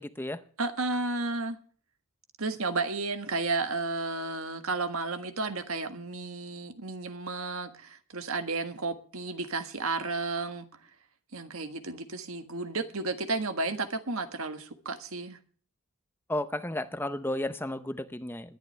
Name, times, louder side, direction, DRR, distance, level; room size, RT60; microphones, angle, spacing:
voice 1, 0.0-0.4 16.3-18.6, left 1 dB, 10° left, 0.7 m, -33 dB
voice 2, 0.6-1.6 2.4-10.7 11.3-15.4, right 3 dB, 80° right, 1.6 m, -32 dB
21.0 x 11.0 x 3.3 m
head